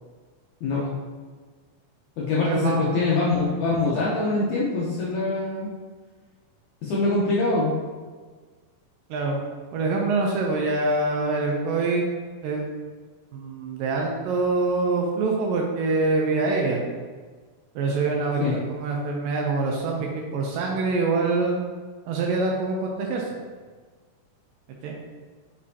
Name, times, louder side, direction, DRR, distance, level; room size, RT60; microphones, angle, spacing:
voice 1, 0.6-1.0 2.2-5.7 6.8-7.7 18.4-18.6, left 3 dB, 75° left, -6 dB, 1.8 m, -24 dB
voice 2, 2.4-2.9 9.1-9.4 9.7-12.1 12.4-12.6 13.3-16.8 17.8-21.6 22.1-23.3 24.8-24.9, right 3 dB, 80° right, 0 dB, 2.1 m, -25 dB
6.5 x 5.2 x 2.8 m, 1.5 s
omnidirectional pair, 4.3 m